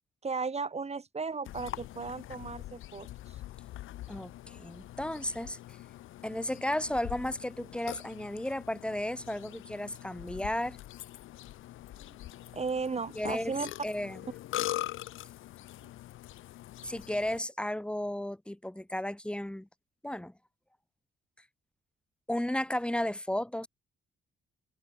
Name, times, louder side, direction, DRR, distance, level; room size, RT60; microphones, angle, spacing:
voice 1, 0.2-3.4 12.5-13.7, right 4 dB, 30° right, 5.7 m, -35 dB
Burping eructation, 1.5-17.4, left 15 dB, 85° left, 2.0 m, -43 dB
voice 2, 4.1-5.6 6.2-10.8 13.2-13.5 13.8-14.2 16.8-19.7 20.0-20.3 22.3-23.7, left 1 dB, 5° left, 2.6 m, -34 dB
cardioid pair, 90°, 20 cm